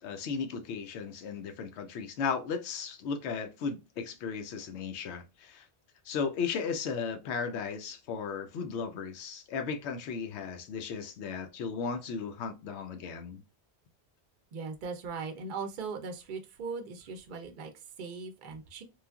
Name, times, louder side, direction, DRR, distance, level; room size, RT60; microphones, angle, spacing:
voice 1, 0.0-5.6 6.1-13.4, left 5 dB, 80° left, 0.9 m, -35 dB
voice 2, 14.5-18.8, right 4 dB, 55° right, 0.6 m, -39 dB
3.1 x 2.3 x 2.2 m
omnidirectional pair, 1.1 m